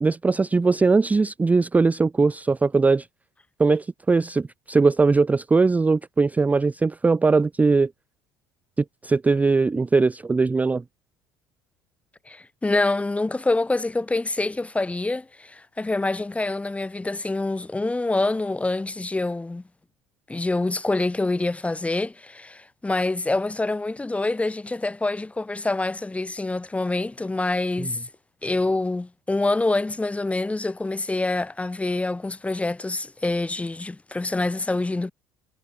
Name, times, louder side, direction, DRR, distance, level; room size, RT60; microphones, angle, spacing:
voice 1, 0.0-3.1 3.6-7.9 8.8-10.8 27.8-27.9, right 4 dB, 15° right, 0.4 m, -20 dB
voice 2, 12.3-19.6 20.3-28.0 28.4-35.1, left 2 dB, 10° left, 0.9 m, -26 dB
figure-of-eight pair, 60°, 12 cm